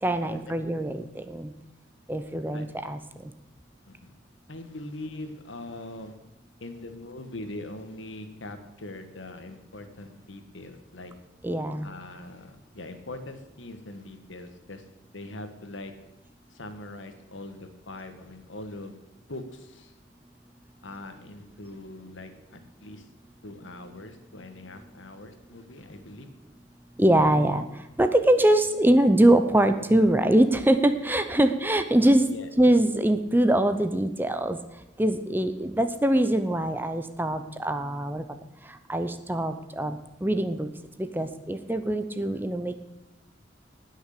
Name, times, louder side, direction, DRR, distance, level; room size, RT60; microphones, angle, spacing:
voice 1, 0.0-1.5 2.1-3.3 11.4-11.9 27.0-27.7 28.0-32.3 32.6-34.6 35.0-38.2 38.7-40.7 41.0-42.8, right 1 dB, 10° right, 9 dB, 0.6 m, -23 dB
voice 2, 4.5-6.1 6.6-11.1 11.8-14.8 15.1-15.9 16.5-19.0 19.3-19.9 20.8-23.1 23.4-26.3 32.2-32.5, left 2 dB, 85° left, 8 dB, 1.5 m, -42 dB
19.0 x 6.5 x 6.7 m, 0.94 s
head